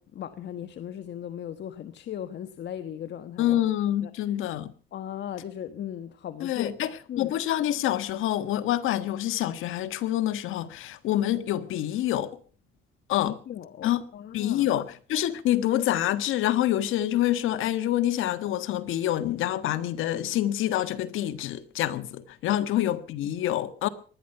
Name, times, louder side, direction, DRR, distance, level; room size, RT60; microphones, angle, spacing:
voice 1, 0.0-3.6 4.0-4.1 4.9-6.7 7.1-7.3 13.2-14.7, left 10 dB, 60° left, 1.3 m, -37 dB
voice 2, 3.4-4.7 6.4-12.4 13.1-13.4 13.8-14.0 14.3-23.9, left 13 dB, 75° left, 1.5 m, -27 dB
20.0 x 12.5 x 5.7 m
cardioid pair, 105°, 21 cm